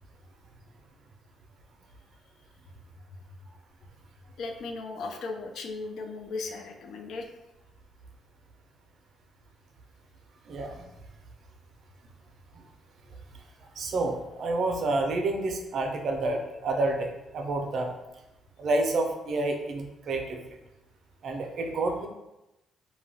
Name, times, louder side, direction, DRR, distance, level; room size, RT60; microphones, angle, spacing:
voice 1, 4.4-7.4, left 3 dB, 75° left, 4 dB, 0.3 m, -37 dB
voice 2, 10.5-10.9 12.5-12.6 13.8-17.9 18.6-20.4 21.2-22.1, right 2 dB, 65° right, 3 dB, 0.4 m, -29 dB
2.2 x 2.2 x 3.3 m, 0.95 s
cardioid pair, 90°, 0 cm